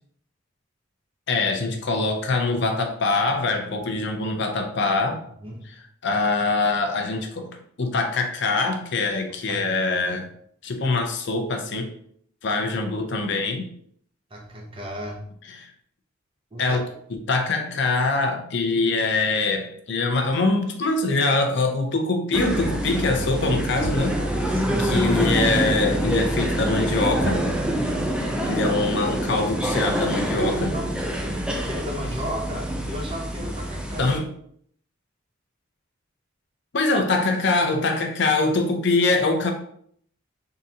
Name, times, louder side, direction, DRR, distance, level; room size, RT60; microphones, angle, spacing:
voice 1, 1.3-5.2 5.6-5.7 6.0-7.5 7.8-10.3 10.6-11.9 12.4-13.7 15.5-15.7 16.6-16.8 17.3-24.5 24.8-27.4 28.4-30.7 34.0-34.3 36.7-39.5, left 3 dB, 60° left, 4 dB, 0.6 m, -23 dB
voice 2, 14.3-15.3 16.5-16.8 24.5-25.2 30.7-34.1, equal, 25° right, 0 dB, 0.8 m, -35 dB
sound 1, 22.3-34.2, right 1 dB, 5° right, 0.4 m, -26 dB
3.8 x 3.8 x 2.8 m, 0.65 s
head